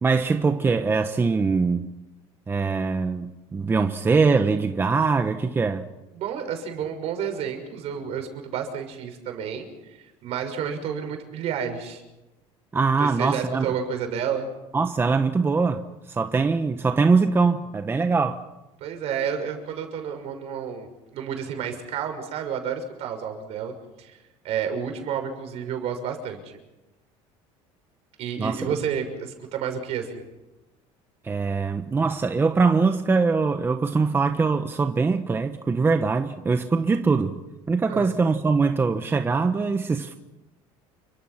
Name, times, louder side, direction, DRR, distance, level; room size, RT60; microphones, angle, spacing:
voice 1, 0.0-1.9 2.5-5.9 12.7-13.7 14.7-18.4 28.4-28.6 31.2-37.4 37.7-40.2, right 4 dB, 20° right, 1.1 m, -22 dB
voice 2, 6.1-12.0 13.0-14.5 18.8-24.2 24.4-26.6 28.2-30.2 37.9-38.1, right 7 dB, 60° right, 6.3 m, -30 dB
29.5 x 25.0 x 5.9 m
cardioid pair, 130°, 12 cm